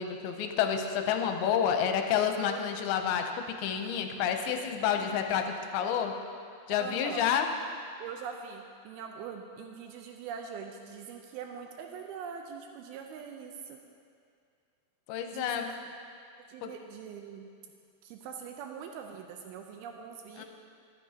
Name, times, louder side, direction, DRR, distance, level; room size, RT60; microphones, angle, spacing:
voice 1, 0.0-3.3 3.6-6.1 6.7-7.5 15.1-15.7 16.6-16.7 20.4-20.5, left 8 dB, 80° left, 5 dB, 2.6 m, -29 dB
voice 2, 4.9-5.2 6.7-7.3 8.0-13.8 15.3-15.9 16.4-17.5 18.0-20.4, right 7 dB, 85° right, 3 dB, 2.5 m, -43 dB
13.0 x 12.0 x 2.8 m, 2.3 s
omnidirectional pair, 4.5 m